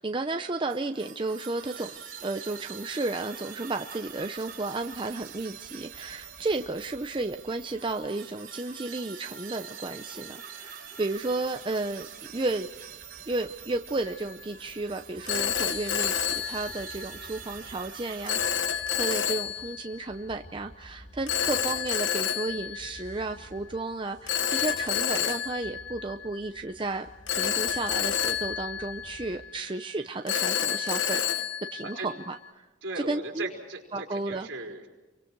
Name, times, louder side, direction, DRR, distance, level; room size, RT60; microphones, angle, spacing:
voice 1, 0.0-1.9 2.2-12.1 12.3-12.7 13.3-27.1 27.4-31.2 31.7-32.7 33.0-33.5 33.9-34.5, right 2 dB, 25° right, 6 dB, 0.6 m, -33 dB
sound 1, 0.7-18.5, right 7 dB, 45° right, 4.8 m, -44 dB
Telephone, 14.0-14.3 15.3-17.3 18.3-20.0 21.3-23.4 24.3-26.6 27.3-29.6 30.3-32.5, left 8 dB, 70° left, 1.3 m, -30 dB
sound 2, 14.3-29.4, equal, 40° left, 7.8 m, -52 dB
voice 2, 32.8-34.9, right 2 dB, 65° right, 0 dB, 4.7 m, -38 dB
29.5 x 24.5 x 4.7 m, 1.1 s
head